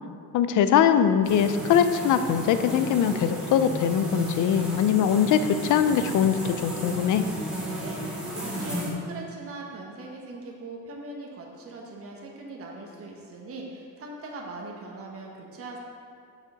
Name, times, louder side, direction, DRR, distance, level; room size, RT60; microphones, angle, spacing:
voice 1, 0.3-7.2, left 8 dB, 60° left, 11 dB, 0.6 m, -22 dB
sound 1, 1.2-8.9, equal, ahead, 1.5 m, -33 dB
voice 2, 7.7-8.0 8.3-15.8, right 2 dB, 40° right, -1 dB, 1.4 m, -40 dB
6.7 x 6.4 x 5.1 m, 2.4 s
cardioid pair, 120°, 35 cm